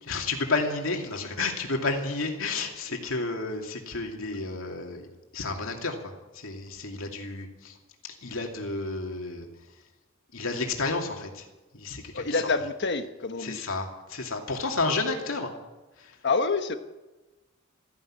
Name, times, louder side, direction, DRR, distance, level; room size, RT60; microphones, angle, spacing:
voice 1, 0.0-5.1 5.3-7.8 8.2-9.5 10.3-11.4 11.7-12.4 13.4-15.5 16.0-16.1, left 3 dB, 85° left, 2 dB, 2.6 m, -31 dB
voice 2, 12.1-13.6 16.2-16.8, left 4 dB, 60° left, 8 dB, 1.2 m, -27 dB
14.5 x 11.0 x 8.7 m, 1.1 s
head